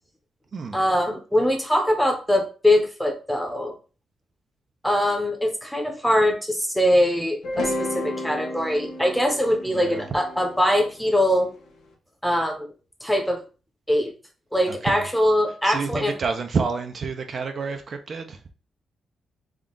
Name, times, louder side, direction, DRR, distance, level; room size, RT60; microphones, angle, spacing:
voice 1, 0.7-3.7 4.8-11.5 12.2-12.7 13.0-13.4 13.9-14.1 14.5-16.1, left 1 dB, 5° left, 4 dB, 0.8 m, -22 dB
sound 1, 7.4-11.6, left 1 dB, 80° left, 1.0 m, -32 dB
voice 2, 9.7-10.0 14.7-15.1 15.6-18.5, right 4 dB, 50° right, 6 dB, 0.5 m, -29 dB
3.6 x 2.3 x 3.7 m, 0.34 s
cardioid pair, 110°, 0 cm